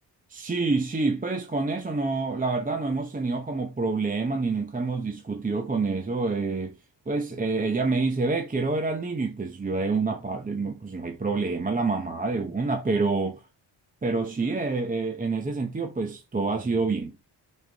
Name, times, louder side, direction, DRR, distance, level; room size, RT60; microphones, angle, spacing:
voice 1, 0.3-6.8 7.1-13.4 14.0-17.1, right 3 dB, 20° right, 0.8 m, -27 dB
6.6 x 5.2 x 2.9 m
wide cardioid pair, 170°, 44 cm